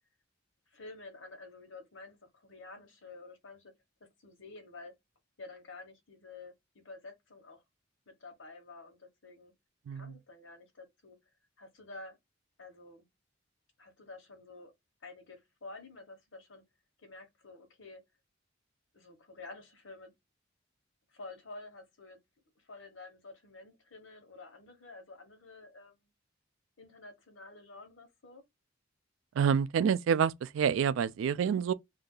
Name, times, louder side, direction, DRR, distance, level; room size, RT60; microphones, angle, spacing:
voice 1, 0.7-3.7 4.2-4.9 5.4-7.6 8.1-9.5 9.9-11.2 11.6-12.2 12.6-13.1 13.8-14.7 15.0-16.6 17.0-18.0 18.9-20.1 21.1-22.2 22.5-26.1 26.8-28.4, left 3 dB, 85° left, 1.2 m, -50 dB
voice 2, 29.4-31.7, right 7 dB, 85° right, 0.3 m, -28 dB
2.7 x 2.3 x 3.7 m
head